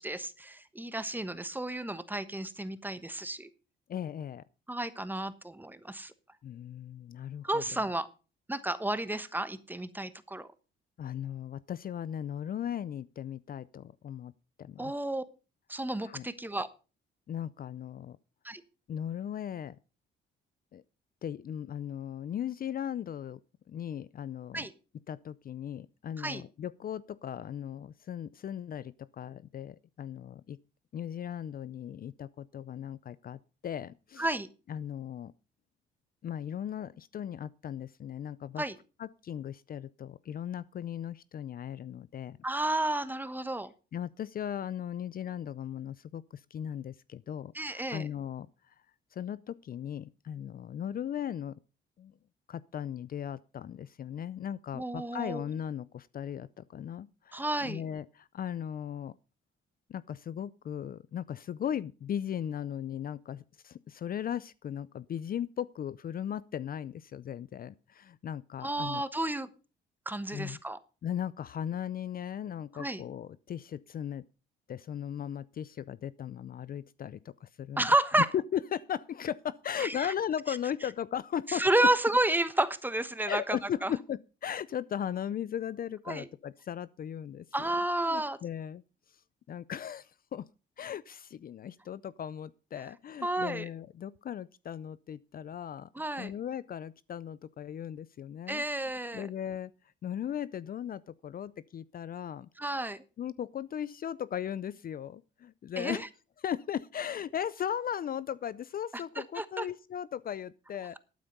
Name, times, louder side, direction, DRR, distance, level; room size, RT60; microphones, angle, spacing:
voice 1, 0.0-3.5 4.7-6.1 7.4-8.1 8.5-10.5 14.8-15.2 15.7-16.7 18.4-18.6 24.5-24.7 26.2-26.4 34.2-34.5 38.6-38.7 42.4-43.7 47.5-48.1 54.7-55.4 57.3-57.8 68.6-69.5 70.1-70.8 72.8-73.0 77.8-78.3 79.8-80.1 80.5-80.6 81.5-83.9 86.1-86.3 87.5-88.4 93.2-93.6 95.9-96.3 98.5-99.3 102.6-103.0 105.8-106.1 108.9-109.0 109.4-109.7, right 1 dB, 10° right, 1.1 m, -31 dB
voice 2, 3.9-4.4 6.4-7.6 11.0-14.3 14.6-14.9 16.0-16.3 17.3-18.2 18.9-19.8 20.7-20.8 21.2-23.4 23.7-24.7 25.1-30.6 30.9-34.2 34.7-35.3 36.2-38.6 39.0-42.4 43.9-48.7 49.1-51.5 52.0-52.1 52.5-59.1 59.9-69.0 70.3-70.6 71.0-74.2 74.7-77.9 78.3-81.7 83.3-87.5 88.0-88.8 89.1-89.2 89.5-90.5 90.8-95.9 96.2-98.6 99.1-99.7 100.0-102.5 103.2-106.1 106.4-111.0, left 9 dB, 45° left, 0.5 m, -37 dB
12.5 x 8.9 x 5.3 m
cardioid pair, 90°, 20 cm